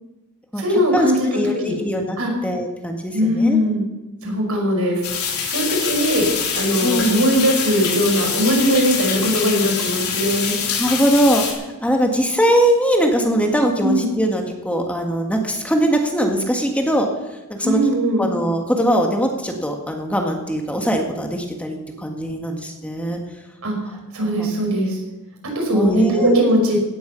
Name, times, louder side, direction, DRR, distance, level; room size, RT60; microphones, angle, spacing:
voice 1, 0.6-1.2 1.6-1.7 2.2-2.3 3.1-3.8 4.2-5.0 5.4-10.6 13.8-14.1 17.6-18.3 23.6-23.8 24.1-25.0 25.6-26.8, equal, 80° right, 0 dB, 5.6 m, -20 dB
voice 2, 1.3-2.2 2.4-3.6 4.2-4.5 6.8-7.2 10.8-17.8 18.2-23.2 24.2-24.5 25.7-26.5, right 1 dB, 5° left, 2 dB, 1.6 m, -21 dB
sound 1, 5.0-11.5, left 6 dB, 90° left, 3.4 m, -24 dB
17.0 x 9.3 x 7.0 m, 1.1 s
head